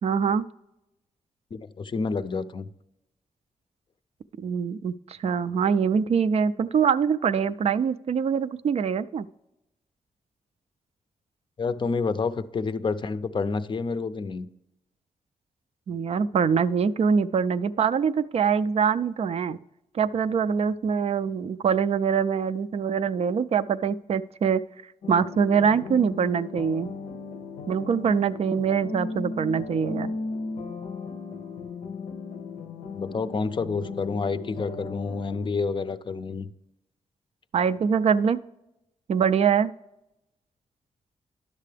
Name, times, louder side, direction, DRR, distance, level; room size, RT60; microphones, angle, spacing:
voice 1, 0.0-0.5 4.4-9.3 15.9-19.6 19.9-24.6 25.1-26.9 27.7-30.1 37.5-38.4 39.1-39.7, right 6 dB, 60° right, 0.4 m, -24 dB
voice 2, 1.5-2.7 11.6-14.5 32.9-36.5, left 4 dB, 40° left, 0.4 m, -29 dB
sound 1, 25.0-35.5, left 4 dB, 85° left, 0.6 m, -36 dB
10.5 x 6.7 x 3.3 m
cardioid pair, 75°, 12 cm